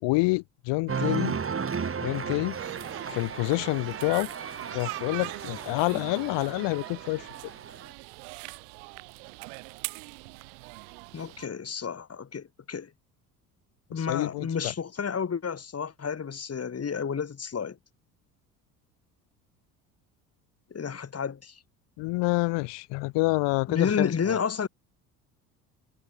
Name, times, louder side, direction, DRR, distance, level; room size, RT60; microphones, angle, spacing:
voice 1, 0.0-1.4 2.0-2.6 3.1-4.3 4.7-7.5 14.0-14.7 22.0-24.4, left 24 dB, 60° left, 5.4 m, -28 dB
Cheering, 0.9-7.9, right 6 dB, 25° right, 3.6 m, -35 dB
sound 1, 2.5-11.5, right 35 dB, 65° right, 3.9 m, -42 dB
voice 2, 11.1-12.9 13.9-17.8 20.7-21.6 23.7-24.7, left 6 dB, 30° left, 4.9 m, -31 dB
figure-of-eight pair, 60°, 47 cm